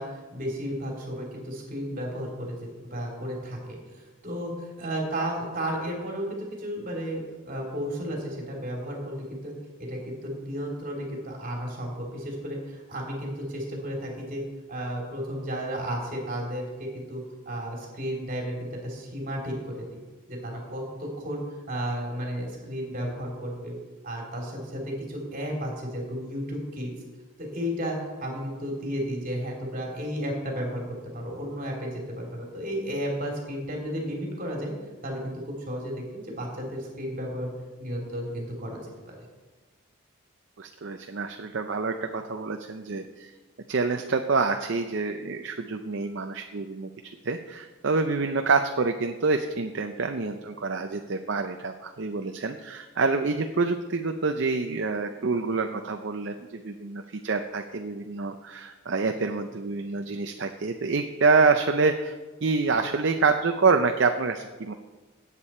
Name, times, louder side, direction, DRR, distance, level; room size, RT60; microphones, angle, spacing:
voice 1, 0.0-9.5 9.8-14.4 14.7-20.0 20.3-23.7 24.0-26.9 27.4-30.8 31.1-34.7 35.0-37.5 37.8-38.8 39.1-39.3, equal, 40° right, -1 dB, 2.9 m, -33 dB
voice 2, 40.6-43.3 43.7-46.9 47.2-62.2 62.4-64.7, right 4 dB, 55° right, 6 dB, 0.6 m, -27 dB
17.0 x 8.4 x 4.4 m, 1.3 s
head